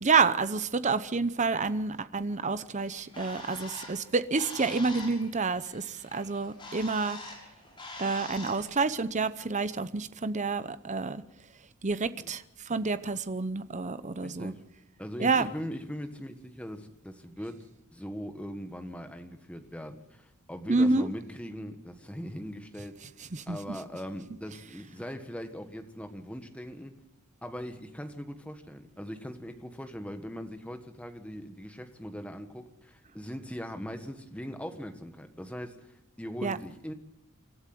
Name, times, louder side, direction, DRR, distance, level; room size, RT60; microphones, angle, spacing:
voice 1, 0.0-7.2 8.0-11.2 11.8-14.5 15.2-15.5 20.7-21.1 23.3-23.6 36.4-36.6, right 4 dB, 35° right, 14 dB, 0.8 m, -28 dB
Bird, 2.8-8.7, left 2 dB, 20° left, 6.3 m, -45 dB
voice 2, 14.2-14.6 15.0-23.0 23.5-26.9 27.4-36.9, equal, 5° left, 7 dB, 1.5 m, -40 dB
26.0 x 13.0 x 7.7 m, 0.89 s
head